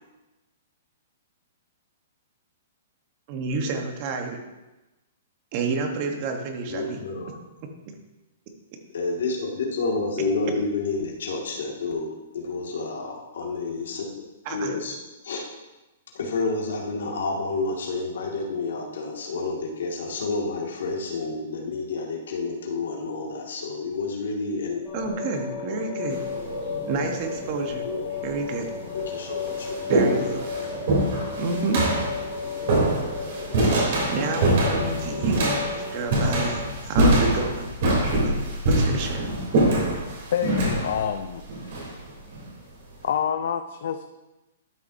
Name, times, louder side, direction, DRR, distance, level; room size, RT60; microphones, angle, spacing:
voice 1, 3.3-4.4 5.5-7.0 14.4-14.7 24.9-26.2 26.9-27.8 28.2-28.7 29.9-30.4 31.4-31.8 34.1-37.7 38.2-38.3 38.7-39.2, right 4 dB, 35° right, 4 dB, 1.1 m, -29 dB
voice 2, 6.7-7.4 8.9-14.0 14.5-15.0 15.2-15.5 16.1-24.8 27.8-28.1 28.9-29.7, left 3 dB, 80° left, 0 dB, 1.9 m, -29 dB
sound 1, 24.8-36.5, left 5 dB, 15° left, 2.3 m, -33 dB
sound 2, 26.1-26.5 27.5-27.6 28.4-28.5 28.9-42.4, right 1 dB, 50° right, 3.0 m, -24 dB
voice 3, 39.9-41.8 43.0-44.0, left 8 dB, 60° left, 8 dB, 0.4 m, -28 dB
12.5 x 6.0 x 2.7 m, 1.1 s
hypercardioid pair, 165°, 0 cm